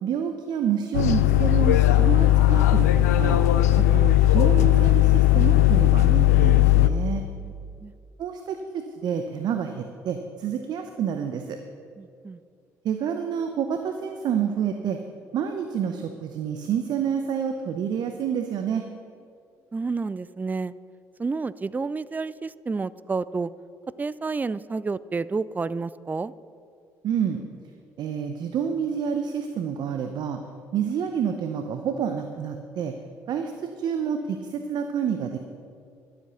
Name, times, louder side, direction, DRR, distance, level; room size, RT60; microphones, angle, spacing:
voice 1, 0.0-3.4 3.8-7.2 8.2-11.6 12.8-15.0 15.3-18.8 27.0-27.4 28.0-30.4 30.7-32.9 33.3-35.4, right 8 dB, 60° right, 7 dB, 0.8 m, -28 dB
sound 1, 0.9-6.9, left 14 dB, 90° left, 0.4 m, -18 dB
voice 2, 12.0-12.4 19.7-20.7 21.2-23.5 24.0-26.3, right 4 dB, 20° right, 18 dB, 0.4 m, -30 dB
12.5 x 7.8 x 6.8 m, 2.5 s
hypercardioid pair, 50°, 8 cm